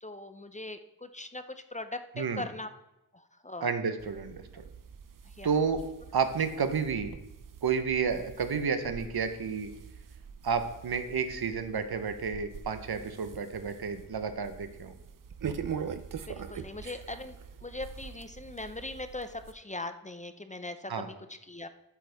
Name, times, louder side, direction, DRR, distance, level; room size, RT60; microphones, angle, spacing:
voice 1, 0.0-2.7 3.1-3.7 5.4-5.5 16.3-21.7, left 2 dB, 20° left, 10 dB, 0.6 m, -40 dB
voice 2, 3.6-4.6 5.4-5.8 6.1-7.1 7.6-9.7 10.4-14.9 20.9-21.1, right 6 dB, 70° right, 9 dB, 1.1 m, -31 dB
sound 1, 4.0-19.5, right 7 dB, 55° right, 0.7 m, -44 dB
13.0 x 8.4 x 3.6 m, 0.92 s
wide cardioid pair, 100°, 39 cm